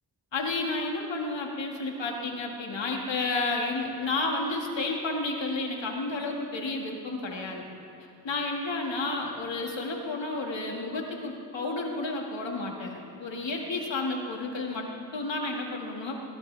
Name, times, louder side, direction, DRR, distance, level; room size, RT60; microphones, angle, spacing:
voice 1, 0.3-7.7 8.2-16.2, left 2 dB, 85° left, 0 dB, 2.1 m, -31 dB
18.0 x 18.0 x 3.4 m, 2.7 s
cardioid pair, 50°, 43 cm